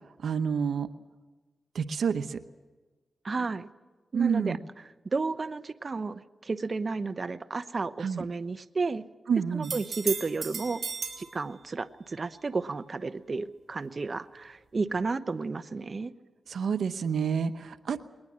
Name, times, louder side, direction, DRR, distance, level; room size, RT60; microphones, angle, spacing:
voice 1, 0.2-0.9 1.7-2.4 4.1-4.6 8.0-8.2 9.3-9.7 16.5-18.0, right 6 dB, 85° right, 11 dB, 0.9 m, -28 dB
voice 2, 3.2-3.7 4.1-4.6 5.0-9.0 9.5-10.8 11.2-16.1, right 3 dB, 45° right, 12 dB, 0.9 m, -32 dB
sound 1, 9.6-11.3 15.0-15.1, right 5 dB, 65° right, 4.3 m, -35 dB
21.5 x 19.5 x 7.5 m, 1.3 s
cardioid pair, 65°, 0 cm